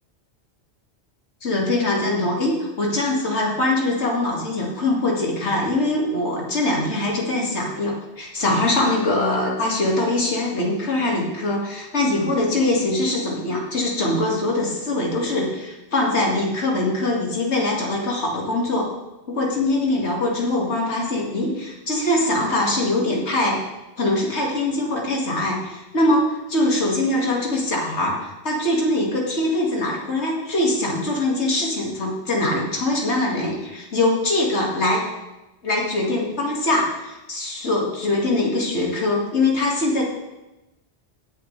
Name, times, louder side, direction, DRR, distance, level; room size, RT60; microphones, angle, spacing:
voice 1, 1.4-18.9 19.4-23.6 24.0-35.0 35.6-40.0, left 2 dB, 80° left, -2 dB, 2.5 m, -22 dB
21.0 x 7.0 x 3.3 m, 1.0 s
omnidirectional pair, 1.1 m